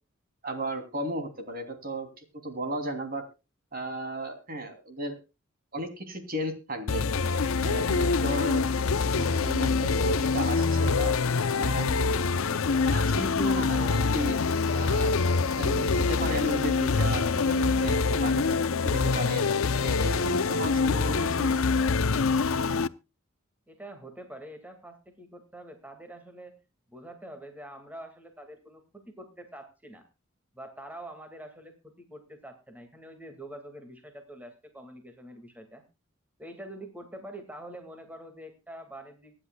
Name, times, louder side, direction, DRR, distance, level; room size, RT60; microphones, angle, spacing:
voice 1, 0.4-2.1 2.4-3.2 3.7-5.1 5.7-7.1 7.6-8.7 9.1-11.1 11.6-12.1 12.5-12.6 12.9-14.4 14.7-18.6 18.8-19.5 19.8-21.6, right 1 dB, 45° right, 6 dB, 3.1 m, -35 dB
sound 1, 6.9-22.9, left 4 dB, 85° left, 0.7 m, -25 dB
voice 2, 23.7-26.6 26.9-30.1 30.5-35.8 36.4-39.5, right 1 dB, 10° right, 5 dB, 2.1 m, -45 dB
25.0 x 10.0 x 2.3 m, 0.29 s
head